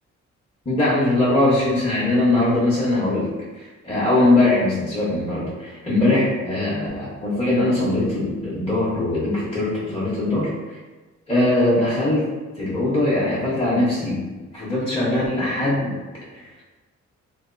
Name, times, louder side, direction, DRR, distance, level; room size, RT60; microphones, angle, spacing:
voice 1, 0.6-3.3 3.5-10.5 11.3-12.2 12.6-14.3 14.5-15.9 16.3-16.5, left 2 dB, 20° left, -9 dB, 0.9 m, -21 dB
2.7 x 2.2 x 2.5 m, 1.3 s
cardioid pair, 75°, 29 cm